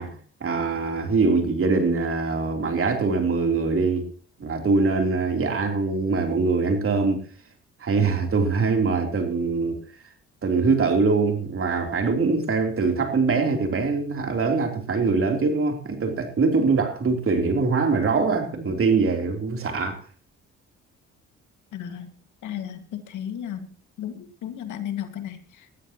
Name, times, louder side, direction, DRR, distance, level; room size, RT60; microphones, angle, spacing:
voice 1, 0.0-4.1 4.4-7.2 7.8-9.8 10.4-20.0, right 4 dB, 45° right, 4 dB, 3.5 m, -23 dB
voice 2, 21.7-22.1 22.4-23.7 24.0-25.7, left 10 dB, 80° left, 7 dB, 2.0 m, -34 dB
20.0 x 13.0 x 3.0 m, 0.40 s
cardioid pair, 90°, 30 cm